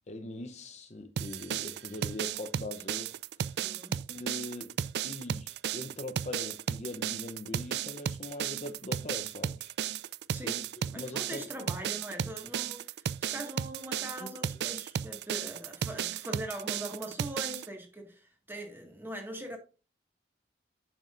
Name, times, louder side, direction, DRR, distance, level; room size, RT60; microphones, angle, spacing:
voice 1, 0.1-3.6 4.1-4.8 5.0-9.7 10.4-11.5 14.2-14.3, left 1 dB, 40° left, 0.8 m, -41 dB
sound 1, 1.2-17.7, right 9 dB, 70° right, 0.3 m, -34 dB
voice 2, 3.6-4.0 10.3-10.6 10.9-19.6, right 1 dB, 10° right, 1.8 m, -42 dB
9.1 x 6.3 x 2.6 m
head